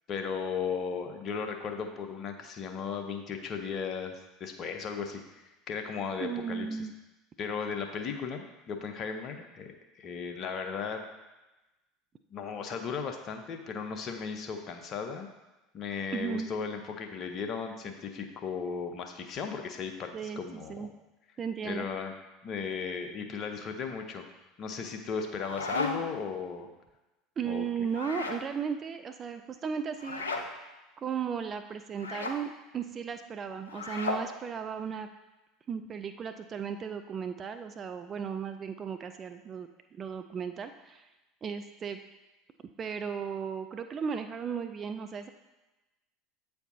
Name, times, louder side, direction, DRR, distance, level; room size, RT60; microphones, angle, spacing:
voice 1, 0.1-5.2 5.7-6.7 7.4-11.0 12.3-15.3 15.7-20.9 21.6-22.1 22.4-24.3 24.6-26.7 27.5-27.6, left 6 dB, 45° left, 5 dB, 0.7 m, -36 dB
voice 2, 6.2-6.9 16.1-16.5 20.1-20.9 21.4-21.9 27.4-30.2 31.0-35.1 35.7-41.1 41.4-42.0 42.8-45.3, right 6 dB, 35° right, 8 dB, 0.4 m, -35 dB
sound 1, 25.2-26.2 27.9-28.4 30.0-30.5 32.0-32.4 33.7-34.3, left 3 dB, 85° left, 0.5 m, -34 dB
8.0 x 4.5 x 2.7 m, 1.1 s
figure-of-eight pair, 75°, 0 cm